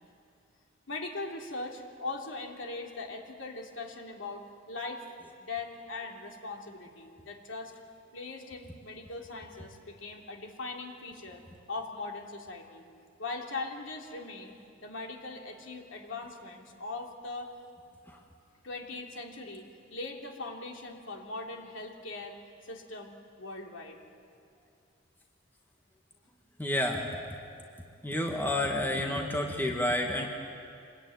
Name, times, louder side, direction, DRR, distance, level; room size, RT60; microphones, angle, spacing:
voice 1, 0.9-5.0 5.4-7.7 8.1-12.9 13.2-14.5 14.8-17.5 18.6-22.4 22.6-24.0, left 3 dB, 70° left, 1 dB, 3.1 m, -40 dB
voice 2, 26.6-27.1 28.0-30.3, left 1 dB, 10° left, 1 dB, 1.8 m, -29 dB
26.5 x 21.0 x 9.6 m, 2.4 s
head